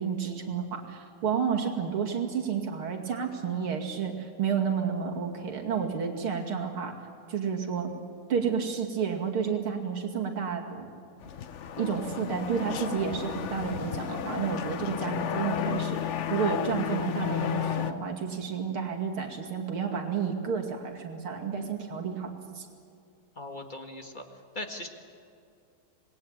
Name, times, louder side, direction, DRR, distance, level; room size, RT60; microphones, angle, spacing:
voice 1, 0.0-6.9 7.3-7.9 8.3-10.9 11.8-16.0 16.3-22.7, right 6 dB, 80° right, 1 dB, 3.3 m, -31 dB
sound 1, 11.2-17.9, left 9 dB, 80° left, 0.6 m, -32 dB
voice 2, 17.2-18.2 23.4-24.2 24.5-24.9, left 1 dB, 25° left, 4 dB, 1.7 m, -39 dB
27.0 x 20.0 x 9.0 m, 2.4 s
omnidirectional pair, 2.3 m